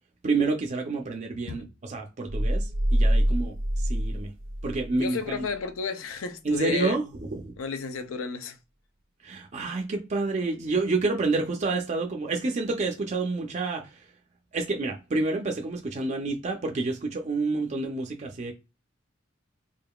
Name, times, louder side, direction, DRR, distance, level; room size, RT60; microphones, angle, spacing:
voice 1, 0.2-4.3 4.6-5.4 6.4-7.6 9.2-14.1 14.5-18.5, right 3 dB, 35° right, 0.5 m, -29 dB
sound 1, 2.3-5.0, equal, 80° right, 1.0 m, -25 dB
voice 2, 4.9-7.0 7.6-8.6, left 5 dB, 85° left, 0.5 m, -32 dB
3.7 x 3.6 x 2.3 m
head